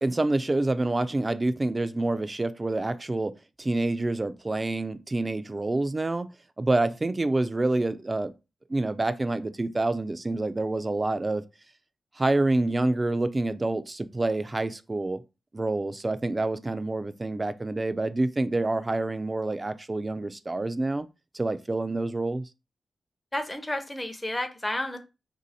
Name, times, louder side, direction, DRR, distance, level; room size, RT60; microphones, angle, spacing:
voice 1, 0.0-3.3 3.6-6.3 6.6-8.3 8.7-11.4 12.2-15.2 15.5-21.1 21.3-22.5, right 2 dB, 30° right, 0.4 m, -27 dB
voice 2, 23.3-25.0, left 1 dB, 20° left, 0.6 m, -31 dB
2.7 x 2.7 x 4.1 m
cardioid pair, 45°, 0 cm